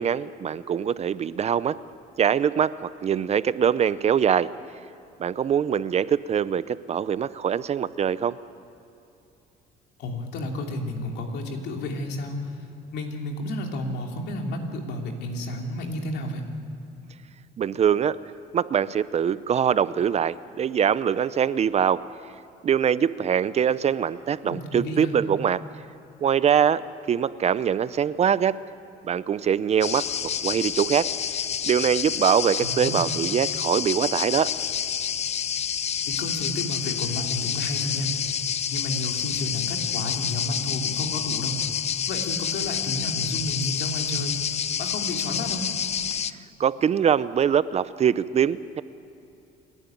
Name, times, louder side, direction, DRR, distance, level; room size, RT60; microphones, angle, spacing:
voice 1, 0.0-1.7 2.2-4.5 5.2-8.4 17.6-18.2 18.5-22.0 22.6-25.6 26.2-26.8 27.1-28.5 29.1-30.0 30.4-31.1 31.6-34.5 46.6-48.8, right 8 dB, 40° right, 16 dB, 0.6 m, -23 dB
voice 2, 10.0-12.6 12.9-16.4 24.4-25.1 32.6-33.0 36.1-38.1 38.7-41.6 42.1-44.4 44.8-45.7, left 1 dB, 80° left, 2 dB, 3.0 m, -31 dB
sound 1, 29.8-46.3, left 8 dB, 40° left, 0.6 m, -28 dB
29.0 x 11.0 x 9.2 m, 2.8 s
cardioid pair, 110°, 17 cm